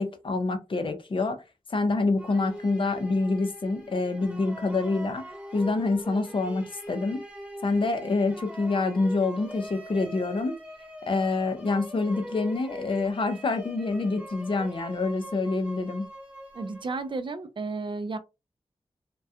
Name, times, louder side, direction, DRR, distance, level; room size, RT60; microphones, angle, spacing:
voice 1, 0.0-1.4 1.7-5.2 5.5-7.2 7.6-10.6 11.1-16.1, left 3 dB, 50° left, 0.5 m, -26 dB
sound 1, 2.2-17.2, equal, 10° right, 0.9 m, -42 dB
voice 2, 16.5-18.2, right 3 dB, 50° right, 0.4 m, -33 dB
2.3 x 2.2 x 2.6 m
wide cardioid pair, 100°, 11 cm